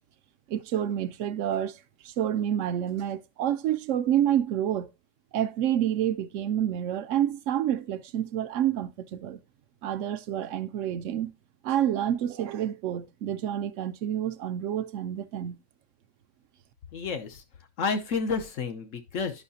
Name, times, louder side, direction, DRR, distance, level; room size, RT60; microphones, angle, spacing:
voice 1, 0.5-1.8 2.0-4.9 5.3-9.4 9.8-11.3 11.6-15.6, right 10 dB, 80° right, 1.0 m, -28 dB
voice 2, 16.9-17.4 17.8-19.4, left 5 dB, 90° left, 1.3 m, -30 dB
11.0 x 5.6 x 2.7 m
omnidirectional pair, 1.3 m